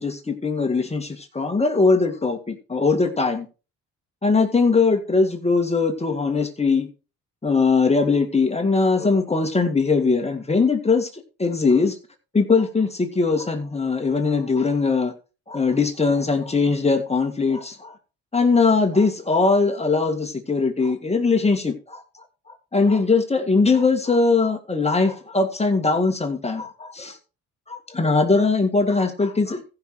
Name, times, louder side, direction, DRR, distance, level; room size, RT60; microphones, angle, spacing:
voice 1, 0.0-3.5 4.2-6.9 7.4-11.1 11.4-12.0 12.3-15.1 15.5-17.9 18.3-22.0 22.7-27.2 27.7-29.6, left 4 dB, 20° left, 2.1 m, -20 dB
15.0 x 5.9 x 4.8 m
cardioid pair, 90°, 30 cm